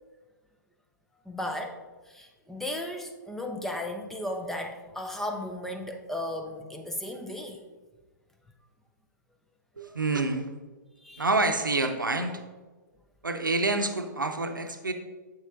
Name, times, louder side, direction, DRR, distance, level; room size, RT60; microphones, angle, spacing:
voice 1, 1.3-1.8 2.1-7.6 9.8-10.0 11.0-11.2, left 1 dB, 5° left, 2 dB, 0.5 m, -35 dB
voice 2, 9.8-10.5 11.2-12.4 13.2-14.9, right 3 dB, 85° right, 7 dB, 0.7 m, -27 dB
7.3 x 6.3 x 2.4 m, 1.3 s
figure-of-eight pair, 115°, 10 cm